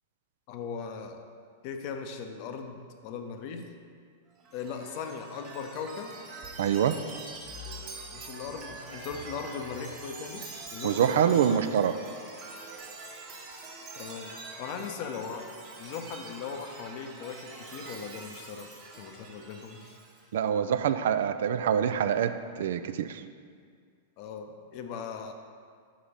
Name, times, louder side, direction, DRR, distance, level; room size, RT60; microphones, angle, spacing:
voice 1, 0.5-1.2 1.6-3.7 4.5-6.2 8.1-10.4 10.7-11.7 13.9-15.5 15.7-20.0 24.2-25.3, left 6 dB, 45° left, 5 dB, 0.7 m, -39 dB
Chime, 4.4-20.3, right 3 dB, 40° right, 1.4 m, -44 dB
voice 2, 6.6-6.9 10.8-11.9 20.3-23.2, right 8 dB, 60° right, 11 dB, 0.3 m, -25 dB
5.8 x 4.9 x 5.4 m, 2.1 s
figure-of-eight pair, 95°, 0 cm